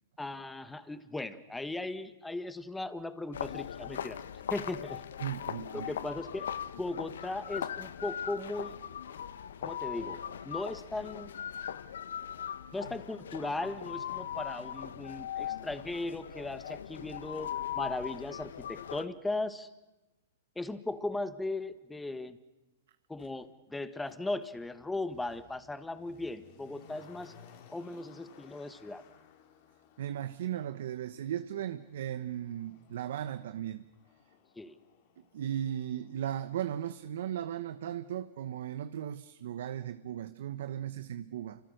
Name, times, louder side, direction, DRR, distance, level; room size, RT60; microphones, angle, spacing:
voice 1, 0.2-4.2 4.5-5.0 5.7-6.5 6.8-8.8 9.6-11.3 12.7-19.7 20.5-22.4 23.1-27.4 27.7-29.0 34.6-34.8, left 2 dB, 5° left, 11 dB, 1.6 m, -37 dB
sound 1, 3.3-19.1, left 9 dB, 75° left, 1.1 m, -40 dB
voice 2, 5.2-5.9 30.0-33.8 35.3-41.6, right 10 dB, 65° right, 12 dB, 1.0 m, -36 dB
Motor vehicle (road), 23.2-23.3 24.0-37.0 37.3-37.4, left 7 dB, 55° left, 5.1 m, -60 dB
29.0 x 25.0 x 6.6 m, 1.1 s
hypercardioid pair, 125°, 0 cm